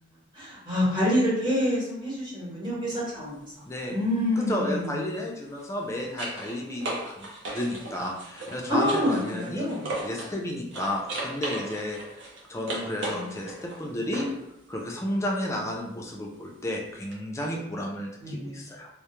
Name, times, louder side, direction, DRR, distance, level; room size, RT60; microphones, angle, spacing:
voice 1, 0.3-3.4 3.9-5.1 8.7-9.9 13.1-13.3 18.2-18.6, left 1 dB, 25° right, -8 dB, 0.9 m, -27 dB
sound 1, 2.9-3.1 5.4-10.4 10.7-14.5 17.1-17.2, right 2 dB, 65° right, 0.5 m, -37 dB
voice 2, 4.4-9.7 10.0-12.0 12.5-14.3 14.7-18.9, left 1 dB, 15° left, 0 dB, 0.3 m, -32 dB
2.2 x 2.0 x 2.9 m, 0.82 s
head